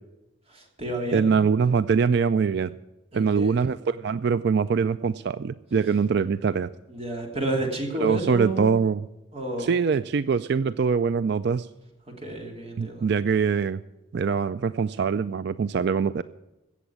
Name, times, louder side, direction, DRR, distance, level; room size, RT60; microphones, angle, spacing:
voice 1, 0.5-1.4 3.1-3.6 6.9-8.8 9.3-9.7 12.1-13.1, right 2 dB, 30° right, 1 dB, 2.8 m, -31 dB
voice 2, 1.1-2.7 3.1-6.7 8.0-9.0 9.6-11.7 12.8-13.8 14.1-16.2, right 5 dB, 55° right, 14 dB, 0.4 m, -23 dB
16.5 x 7.2 x 8.4 m, 0.96 s
head